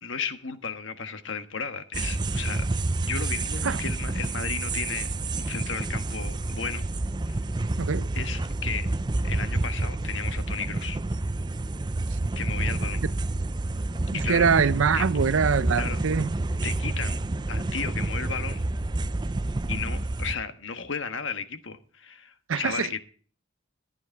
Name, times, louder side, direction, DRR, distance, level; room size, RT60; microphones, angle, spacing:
voice 1, 0.0-2.7 3.0-6.9 7.3-7.4 8.1-8.9 9.2-11.0 12.3-13.0 14.1-14.5 14.9-15.0 15.8-16.0 16.6-17.2 17.5-18.6 19.7-23.0, left 6 dB, 70° left, 1.4 m, -34 dB
sound 1, 1.9-20.4, right 2 dB, 20° right, 0.5 m, -29 dB
voice 2, 7.8-8.1 14.1-16.3 22.5-22.9, right 6 dB, 90° right, 0.6 m, -23 dB
14.0 x 9.6 x 4.5 m
head